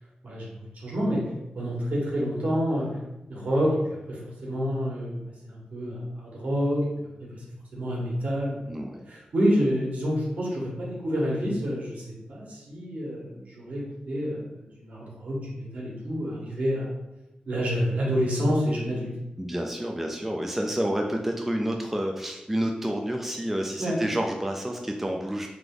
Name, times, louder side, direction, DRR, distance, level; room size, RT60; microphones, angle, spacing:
voice 1, 0.8-1.2 1.5-3.0 3.3-5.2 5.4-6.8 7.2-7.4 7.7-8.5 9.1-16.9 17.5-19.1 23.8-24.0, equal, 65° right, -4 dB, 1.4 m, -28 dB
voice 2, 8.7-9.0 19.4-25.5, right 1 dB, 10° right, 1 dB, 0.4 m, -29 dB
3.4 x 2.9 x 3.7 m, 0.94 s
wide cardioid pair, 110°, 3 cm